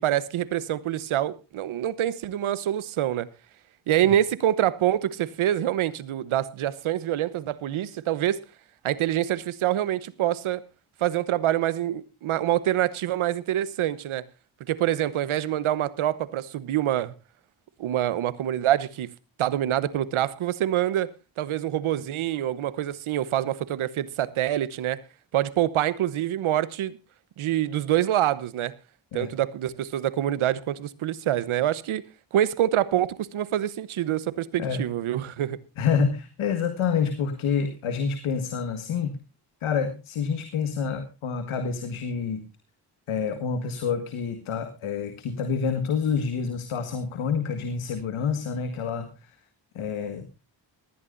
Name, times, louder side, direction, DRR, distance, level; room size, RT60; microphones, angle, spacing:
voice 1, 0.0-3.3 3.9-8.4 8.8-10.6 11.0-14.2 14.7-17.1 17.8-19.1 19.4-21.1 21.4-25.0 25.3-27.0 27.4-28.7 29.1-32.0 32.3-35.6, right 12 dB, 85° right, 1.1 m, -26 dB
voice 2, 35.8-39.2 39.6-42.4 43.1-49.4 49.8-50.3, left 6 dB, 85° left, 1.9 m, -28 dB
19.5 x 14.0 x 2.6 m
cardioid pair, 55°, 48 cm